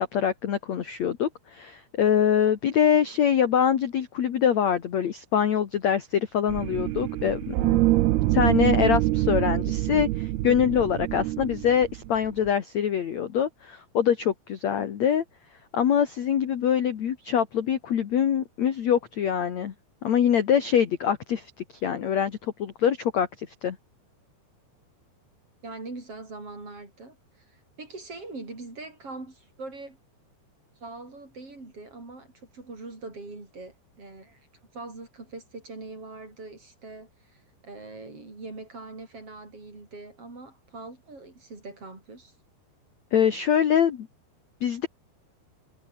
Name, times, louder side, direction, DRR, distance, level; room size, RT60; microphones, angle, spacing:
voice 1, 0.0-7.8 8.3-15.2 15.7-19.7 20.0-21.5 21.8-23.8 43.1-44.1 44.6-44.9, left 8 dB, 55° left, 2.2 m, -24 dB
sound 1, 6.5-12.5, right 17 dB, 75° right, 2.6 m, -25 dB
voice 2, 25.6-27.2 27.5-30.0 30.8-34.4 34.7-42.3, right 3 dB, 30° right, 7.1 m, -42 dB
omnidirectional pair, 5.1 m